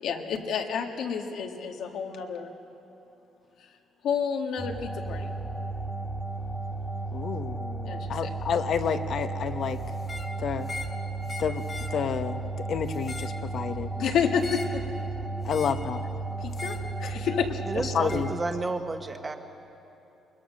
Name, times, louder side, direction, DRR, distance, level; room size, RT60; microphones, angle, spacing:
voice 1, 0.0-2.5 4.0-5.3 7.9-8.3 14.0-14.8 16.4-17.6, left 7 dB, 75° left, 3 dB, 1.7 m, -30 dB
sound 1, 4.6-18.3, right 3 dB, 5° left, 1.6 m, -34 dB
voice 2, 7.1-9.8 10.4-10.7 11.4-11.6 11.9-12.4 12.7-13.9 15.5-16.0 17.9-18.3, left 7 dB, 55° left, 9 dB, 1.0 m, -29 dB
sound 2, 10.0-10.3 10.6-11.0 11.3-12.0 12.9-13.4 14.4-14.8 15.5-15.9 16.5-16.9 18.1-18.3, left 3 dB, 30° left, 2.0 m, -40 dB
voice 3, 17.7-19.4, right 3 dB, 20° right, 6 dB, 1.3 m, -31 dB
22.0 x 21.0 x 6.5 m, 2.9 s
cardioid pair, 125°, 0 cm